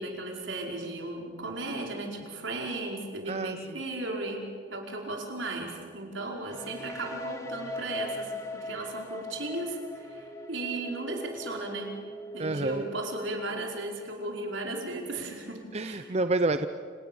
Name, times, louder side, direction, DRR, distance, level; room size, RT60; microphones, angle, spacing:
voice 1, 0.0-12.0 12.3-16.1, right 2 dB, 85° right, 1 dB, 5.0 m, -36 dB
voice 2, 3.3-3.8 12.4-12.9 15.7-16.7, right 2 dB, 35° right, 10 dB, 0.7 m, -29 dB
sound 1, 6.5-14.2, left 1 dB, 15° left, 2.1 m, -40 dB
29.0 x 28.0 x 7.1 m, 2.2 s
head